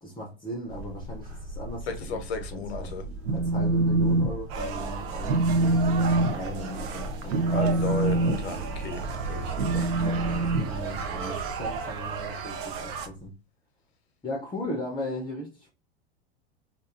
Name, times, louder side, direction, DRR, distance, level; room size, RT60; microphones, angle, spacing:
voice 1, 0.0-3.0 3.3-5.4 6.0-7.6 10.6-13.3 14.2-15.7, equal, 15° left, 0.7 m, -37 dB
sound 1, 0.7-13.3, right 2 dB, 75° right, 1.1 m, -38 dB
voice 2, 1.9-3.0 7.5-9.0 9.3-10.2, left 4 dB, 75° left, 0.8 m, -34 dB
Telephone, 3.1-4.3 4.6-4.9 5.2-11.4, right 2 dB, 90° right, 0.5 m, -25 dB
sound 2, 4.5-13.1, right 6 dB, 45° right, 0.6 m, -36 dB
2.5 x 2.4 x 2.4 m
hypercardioid pair, 85°, 32 cm